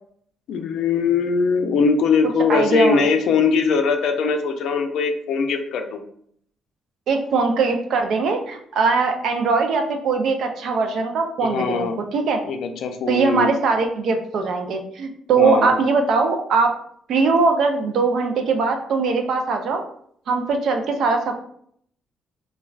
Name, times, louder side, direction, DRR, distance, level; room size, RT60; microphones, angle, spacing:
voice 1, 0.5-6.0 11.4-12.0 12.5-13.5 15.4-15.7, left 5 dB, 75° left, 5 dB, 0.4 m, -21 dB
voice 2, 2.5-3.1 7.1-12.4 13.1-16.7 17.1-19.8 20.3-21.3, right 4 dB, 70° right, 4 dB, 0.4 m, -21 dB
3.2 x 2.2 x 2.3 m, 0.65 s
cardioid pair, 90°, 0 cm